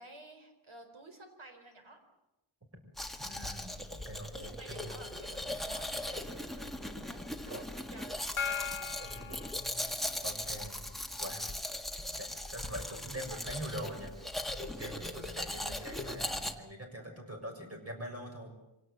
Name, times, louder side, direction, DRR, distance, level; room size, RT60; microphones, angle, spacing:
voice 1, 0.0-2.0 4.3-9.4, right 2 dB, 70° right, 6 dB, 4.5 m, -52 dB
Domestic sounds home sounds, 3.0-16.5, left 1 dB, ahead, 1.7 m, -39 dB
voice 2, 3.2-5.0 7.5-7.6 10.2-10.8 11.2-11.5 11.9-14.1 14.6-18.5, right 1 dB, 30° right, 3 dB, 6.3 m, -43 dB
Gong, 8.4-10.4, left 7 dB, 70° left, 1.1 m, -39 dB
25.5 x 17.5 x 7.8 m, 0.94 s
wide cardioid pair, 110°, 49 cm